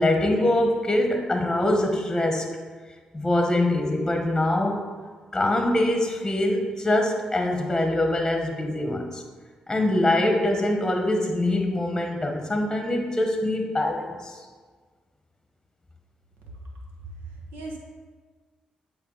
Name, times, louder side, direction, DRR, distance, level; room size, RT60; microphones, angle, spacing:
voice 1, 0.0-2.5 3.1-4.9 5.3-9.2 9.7-14.4, left 1 dB, 15° left, 3 dB, 1.1 m, -24 dB
voice 2, 17.0-17.8, right 3 dB, 80° right, 0 dB, 1.1 m, -38 dB
7.8 x 3.4 x 4.0 m, 1.5 s
hypercardioid pair, 40°, 3 cm